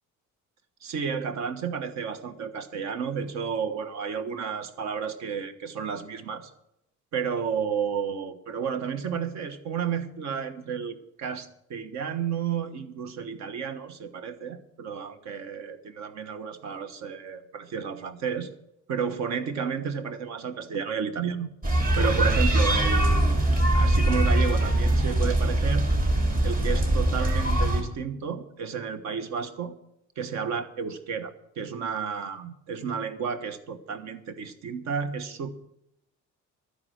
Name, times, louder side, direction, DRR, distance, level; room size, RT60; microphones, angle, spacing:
voice 1, 0.8-6.5 7.1-18.5 18.9-21.5 22.0-23.4 23.7-25.9 26.4-29.8 30.2-35.5, right 6 dB, 60° right, 10 dB, 1.3 m, -32 dB
sound 1, 21.6-27.8, right 1 dB, 30° right, 2.4 m, -22 dB
12.0 x 9.7 x 6.4 m, 0.80 s
cardioid pair, 175°, 31 cm